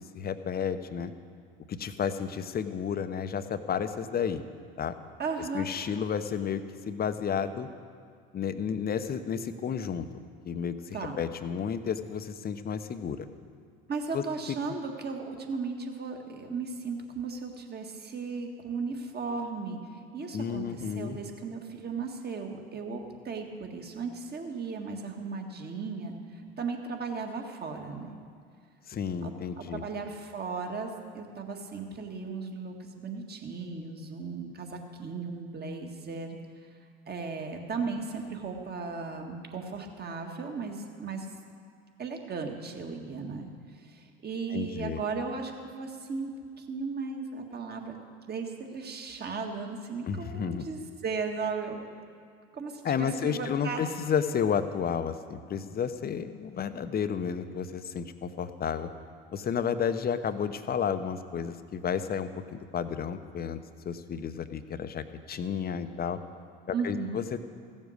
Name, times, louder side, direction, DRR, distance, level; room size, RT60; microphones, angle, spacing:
voice 1, 0.1-1.1 1.7-4.4 4.8-4.9 5.5-7.7 8.3-10.1 10.4-13.3 14.1-14.2 20.3-21.2 28.9-29.8 44.5-45.0 50.1-50.7 52.8-58.9 59.3-63.6 63.8-66.2 66.7-67.4, left 7 dB, 35° left, 11 dB, 0.8 m, -32 dB
voice 2, 5.2-5.7 10.9-11.2 13.9-28.1 29.2-29.3 29.6-36.4 37.1-41.3 42.0-43.5 43.8-46.3 46.6-48.0 48.3-52.0 52.5-53.8 66.7-67.2, right 4 dB, 35° right, 3 dB, 1.8 m, -36 dB
15.5 x 7.3 x 6.5 m, 2.2 s
hypercardioid pair, 70°, 29 cm